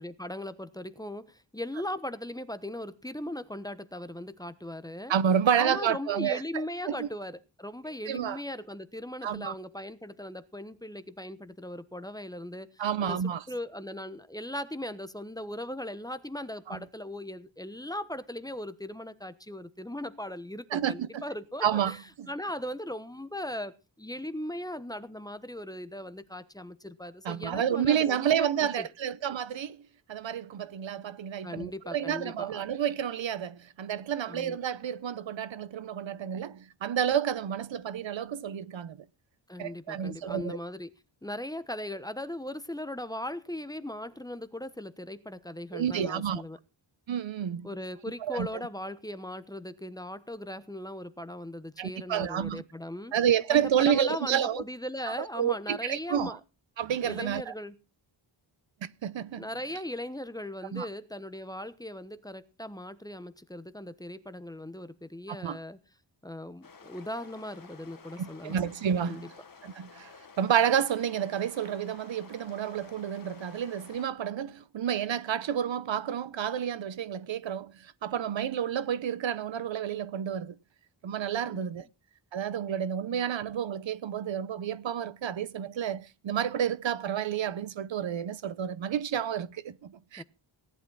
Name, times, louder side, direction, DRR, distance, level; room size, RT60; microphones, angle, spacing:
voice 1, 0.0-5.1 5.6-22.0 22.3-28.5 28.8-28.9 31.4-32.6 34.2-34.6 39.5-40.9 41.2-46.6 47.6-53.1 53.5-56.4 57.0-57.8 59.4-65.8 66.2-68.6 69.0-69.3 81.5-81.7 90.2-90.3, left 1 dB, 10° left, 1.1 m, -38 dB
voice 2, 5.1-7.1 8.1-8.4 9.2-9.5 12.8-13.4 16.7-16.8 20.7-21.2 21.6-22.3 27.2-29.8 30.1-39.0 39.6-40.6 45.7-46.4 47.1-47.7 48.2-48.5 51.8-52.6 53.1-54.6 55.1-56.4 56.8-57.5 58.8-59.5 60.7-60.9 65.4-65.6 68.2-69.3 69.6-80.5 81.0-81.9 82.3-90.2, right 9 dB, 75° right, 0.9 m, -30 dB
sound 1, 66.6-74.1, left 5 dB, 45° left, 2.1 m, -52 dB
17.5 x 11.0 x 4.0 m
wide cardioid pair, 110°, 46 cm